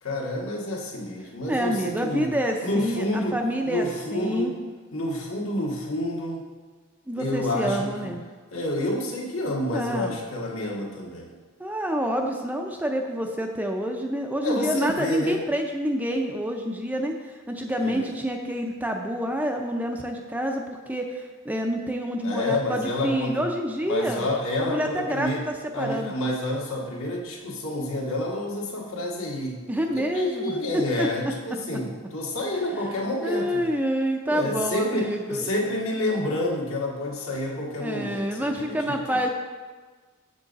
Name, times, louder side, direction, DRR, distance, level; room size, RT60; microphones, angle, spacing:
voice 1, 0.0-2.3 2.6-3.4 3.6-4.6 4.9-6.4 7.2-7.9 8.5-11.4 14.4-15.4 17.8-18.1 22.2-23.4 23.8-25.4 25.7-33.6 34.3-39.2, left 1 dB, 70° left, -2 dB, 1.6 m, -29 dB
voice 2, 1.5-4.5 7.1-8.2 9.7-10.2 11.6-24.3 24.6-26.1 29.7-30.6 31.0-31.1 32.5-32.6 33.2-35.5 37.8-39.3, equal, 5° right, 2 dB, 0.4 m, -28 dB
7.1 x 6.9 x 4.0 m, 1.4 s
head